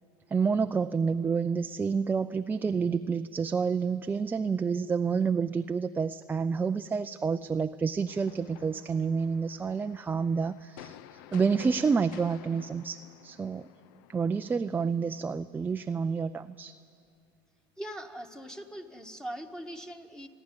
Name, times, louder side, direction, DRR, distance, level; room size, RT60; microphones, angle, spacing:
voice 1, 0.3-13.7 14.1-16.8, right 5 dB, 15° right, 9 dB, 0.4 m, -29 dB
sound 1, 8.1-14.5, left 11 dB, 80° left, 0.6 m, -51 dB
voice 2, 17.8-20.3, equal, 5° left, 5 dB, 1.6 m, -41 dB
29.0 x 11.0 x 9.9 m, 2.3 s
supercardioid pair, 110°, 11 cm